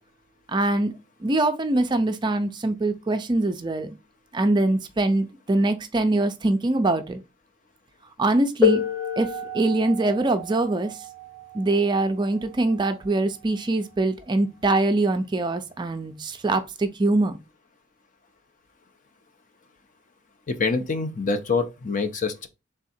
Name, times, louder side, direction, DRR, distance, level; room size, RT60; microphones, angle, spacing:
voice 1, 0.5-0.9 1.2-3.9 4.3-7.2 8.2-8.8 9.2-9.3 9.5-10.9 11.5-17.4, right 2 dB, 20° right, 0.4 m, -23 dB
sound 1, 8.6-14.0 15.1-15.2 16.0-16.2, left 7 dB, 20° left, 2.1 m, -29 dB
voice 2, 20.5-22.5, left 4 dB, 40° left, 0.6 m, -25 dB
3.6 x 3.5 x 4.2 m
head